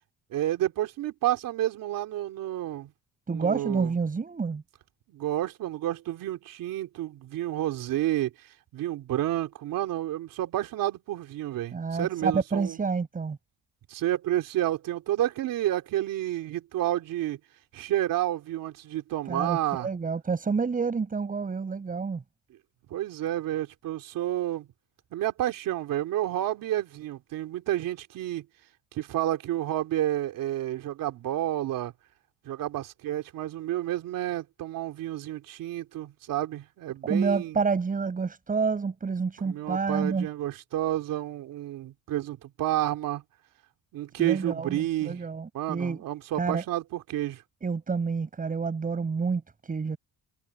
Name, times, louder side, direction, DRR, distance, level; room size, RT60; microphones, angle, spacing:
voice 1, 0.3-2.9 3.3-3.9 5.1-12.8 13.9-17.4 17.7-19.9 22.9-24.7 25.1-28.5 28.9-31.9 32.4-37.6 39.4-43.2 43.9-45.2 45.5-47.4, right 13 dB, 70° right, 3.0 m, -30 dB
voice 2, 3.3-4.6 11.7-13.4 19.3-22.2 37.1-40.3 44.2-46.0 46.4-46.6 47.6-50.0, right 5 dB, 25° right, 7.8 m, -28 dB
cardioid pair, 160°, 34 cm